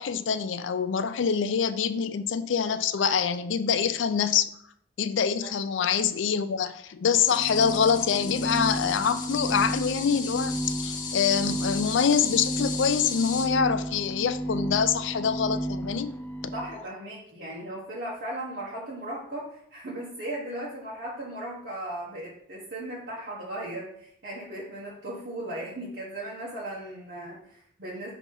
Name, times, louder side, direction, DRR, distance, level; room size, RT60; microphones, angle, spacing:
voice 1, 0.0-4.5 5.0-16.2, left 7 dB, 85° left, 0.4 m, -25 dB
sound 1, 7.1-13.5, left 6 dB, 45° left, 0.8 m, -37 dB
sound 2, 7.1-16.8, right 1 dB, 10° left, 0.3 m, -33 dB
voice 2, 16.5-28.1, right 1 dB, 65° right, 1.3 m, -37 dB
5.9 x 3.0 x 5.4 m
head